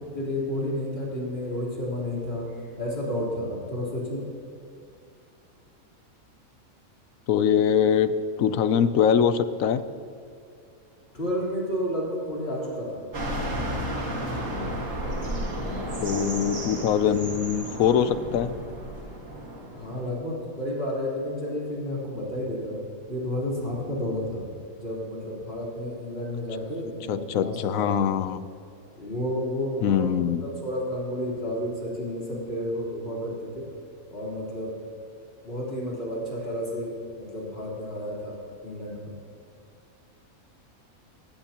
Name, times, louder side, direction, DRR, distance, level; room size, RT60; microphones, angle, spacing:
voice 1, 0.1-4.2 11.1-13.0 19.7-22.8 23.1-24.4 24.8-28.0 29.0-30.0 30.4-33.6 34.1-34.7 35.4-38.4 38.6-38.9, left 1 dB, 45° left, -6 dB, 4.1 m, -31 dB
voice 2, 7.3-8.1 8.4-9.8 16.0-18.5 27.1-28.5 29.8-30.4, left 8 dB, 75° left, 13 dB, 1.1 m, -23 dB
sound 1, 13.1-20.2, equal, 65° right, 2.3 m, -32 dB
19.0 x 16.0 x 2.9 m, 2.4 s
omnidirectional pair, 1.5 m